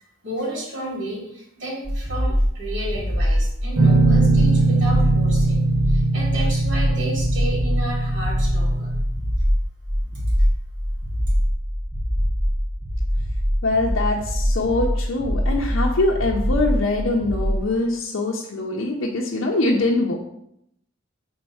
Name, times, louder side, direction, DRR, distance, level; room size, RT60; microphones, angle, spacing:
voice 1, 0.2-8.9, right 1 dB, 65° right, -3 dB, 2.4 m, -32 dB
sound 1, 1.8-17.7, equal, 25° right, 0.9 m, -23 dB
Guitar, 3.8-9.0, right 3 dB, 85° right, 1.0 m, -20 dB
voice 2, 13.6-20.2, left 2 dB, 85° left, -2 dB, 0.7 m, -23 dB
4.4 x 3.9 x 5.5 m, 0.77 s
head